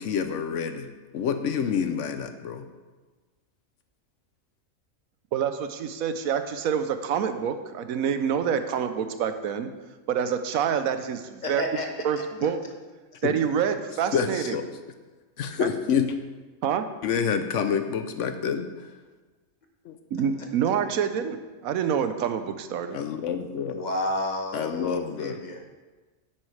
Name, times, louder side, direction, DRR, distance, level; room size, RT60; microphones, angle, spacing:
voice 1, 0.0-2.7 13.2-13.3 14.1-14.7 15.4-16.1 17.0-18.9 19.8-20.0 22.9-23.8 24.5-25.4, left 7 dB, 65° left, 9 dB, 0.9 m, -28 dB
voice 2, 5.3-9.7 10.1-11.6 12.0-12.6 13.2-14.6 15.6-15.7 16.6-16.8 20.1-23.0, right 8 dB, 85° right, 9 dB, 1.1 m, -27 dB
voice 3, 11.4-11.9 23.7-25.6, left 1 dB, 35° left, 2 dB, 1.1 m, -31 dB
10.5 x 8.5 x 3.3 m, 1.3 s
omnidirectional pair, 1.4 m